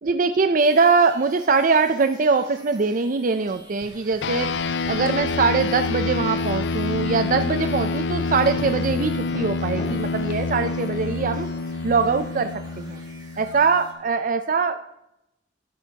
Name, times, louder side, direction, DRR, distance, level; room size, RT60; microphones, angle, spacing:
voice 1, 0.0-11.5 11.8-13.0 13.4-14.8, right 4 dB, 50° right, 8 dB, 0.5 m, -22 dB
sound 1, 0.6-13.9, right 2 dB, 25° right, 2.1 m, -50 dB
sound 2, 3.3-11.5, left 1 dB, 35° left, 1.7 m, -43 dB
sound 3, 4.2-14.0, left 4 dB, 85° left, 0.4 m, -27 dB
12.5 x 10.5 x 2.9 m, 0.85 s
head